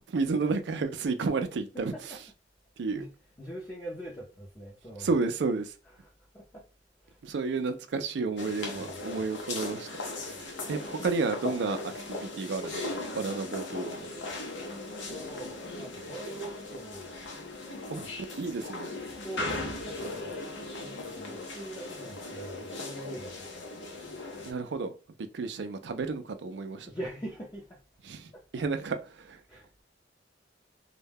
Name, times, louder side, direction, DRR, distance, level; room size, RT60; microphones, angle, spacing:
voice 1, 0.1-2.2 2.8-3.0 5.0-5.7 7.2-9.9 10.2-14.1 17.9-18.1 18.4-18.9 24.4-24.9 25.3-26.9 28.0-29.4, right 4 dB, 65° right, 0.4 m, -32 dB
voice 2, 3.4-5.1 6.0-6.6 7.0-7.2 8.7-9.2 14.5-14.7 15.1-17.2 19.2-20.5 20.8-23.6 26.9-27.8 28.3-28.4 29.5-29.7, right 1 dB, 20° left, 0.6 m, -43 dB
sound 1, 8.4-24.5, left 2 dB, 75° left, 0.6 m, -38 dB
2.2 x 2.1 x 3.3 m
head